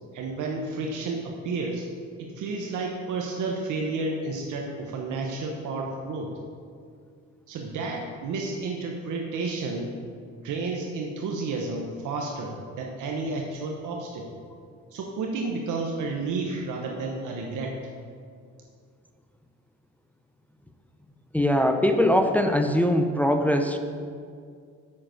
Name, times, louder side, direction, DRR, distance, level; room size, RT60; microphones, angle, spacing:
voice 1, 0.1-1.8 2.4-6.3 7.5-9.9 10.4-14.3 14.9-17.8, right 3 dB, 80° right, 1 dB, 1.0 m, -31 dB
voice 2, 21.3-23.8, left 1 dB, 5° left, 6 dB, 0.6 m, -21 dB
7.6 x 5.9 x 6.3 m, 2.2 s
cardioid pair, 90°, 30 cm